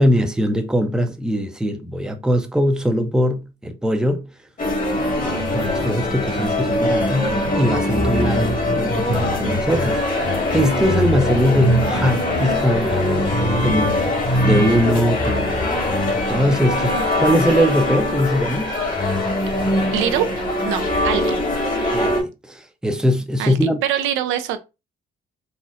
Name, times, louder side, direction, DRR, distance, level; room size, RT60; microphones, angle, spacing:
voice 1, 0.0-4.3 5.2-13.0 13.6-15.8 16.3-18.7 21.9-23.8, equal, 5° right, 0.5 m, -21 dB
sound 1, 4.6-22.2, left 1 dB, 45° left, 1.4 m, -21 dB
voice 2, 19.9-20.3 20.6-21.4 23.4-24.6, right 10 dB, 90° right, 0.5 m, -23 dB
4.0 x 2.0 x 2.4 m
cardioid pair, 90°, 20 cm